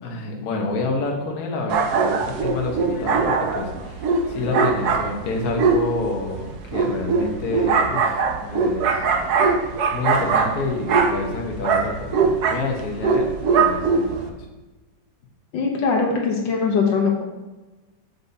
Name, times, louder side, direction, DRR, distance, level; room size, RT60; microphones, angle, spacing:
voice 1, 0.0-14.5, left 3 dB, 55° left, 0 dB, 1.4 m, -28 dB
sound 1, 1.7-14.3, right 5 dB, 65° right, 1.1 m, -22 dB
voice 2, 15.5-17.2, left 5 dB, 75° left, 1 dB, 1.7 m, -22 dB
7.9 x 7.0 x 2.7 m, 1.1 s
omnidirectional pair, 2.1 m